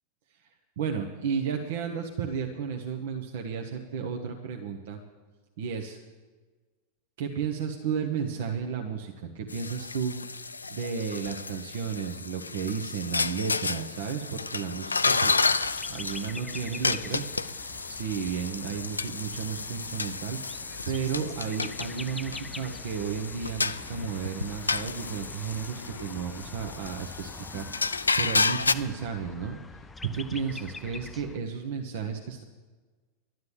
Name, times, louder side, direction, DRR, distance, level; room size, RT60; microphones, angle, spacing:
voice 1, 0.8-5.0 5.6-6.0 7.2-15.5 15.9-32.4, right 6 dB, 55° right, 3 dB, 1.1 m, -33 dB
sound 1, 9.5-28.7, left 4 dB, 80° left, 0.4 m, -31 dB
sound 2, 15.3-31.4, left 3 dB, 10° left, 0.5 m, -45 dB
12.0 x 9.4 x 7.2 m, 1.3 s
figure-of-eight pair, 90°, 0 cm